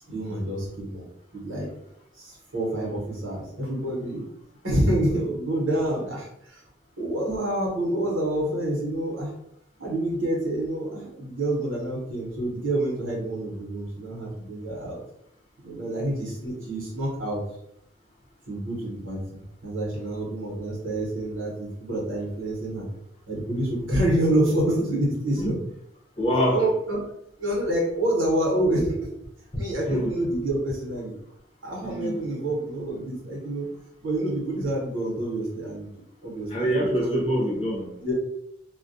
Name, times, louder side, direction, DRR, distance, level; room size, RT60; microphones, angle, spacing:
voice 1, 0.1-1.0 1.3-1.7 2.1-4.3 4.6-6.6 7.0-9.3 9.8-15.0 15.6-17.4 18.5-22.9 23.3-25.5 26.5-27.0 27.4-29.1 29.5-31.2 31.6-33.7 34.0-35.9 36.2-37.2 38.0-38.1, right 1 dB, 90° right, -3 dB, 1.0 m, -27 dB
voice 2, 26.2-26.6 29.5-30.1 31.8-32.2 36.5-37.9, equal, 30° left, -4 dB, 0.7 m, -25 dB
2.2 x 2.1 x 2.6 m, 0.77 s
head